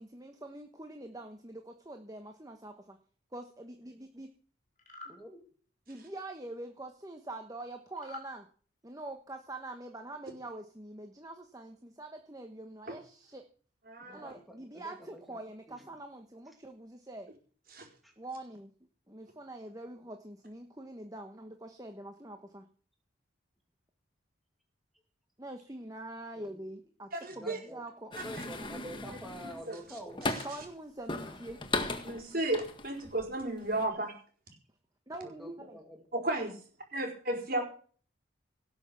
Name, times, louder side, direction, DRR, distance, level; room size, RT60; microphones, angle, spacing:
voice 1, 0.0-3.0 3.3-4.3 5.9-8.4 8.8-13.4 14.1-17.3 18.2-18.7 19.1-21.3 21.6-22.7 25.4-27.1 27.4-29.1 30.4-31.6 32.3-32.4 35.1-35.8, right 1 dB, 15° right, 5 dB, 1.2 m, -45 dB
sound 1, 4.8-5.2 8.0-8.3, left 2 dB, 40° left, 3.9 m, -46 dB
voice 2, 5.0-5.4 14.0-15.4 15.7-15.9 16.5-16.6 18.0-18.1 26.3-26.6 27.3-27.8 28.1-30.5 35.2-36.0, equal, ahead, 1 dB, 2.3 m, -47 dB
voice 3, 13.9-14.3 17.7-17.9 27.1-27.6 28.2-28.5 29.4-30.4 32.0-34.1 36.1-36.6 36.9-37.6, right 1 dB, 45° right, 3 dB, 4.8 m, -34 dB
sound 2, 28.1-30.7 31.1-33.2 33.6-33.9, left 2 dB, 25° left, 1.7 m, -37 dB
18.0 x 7.0 x 7.1 m, 0.43 s
head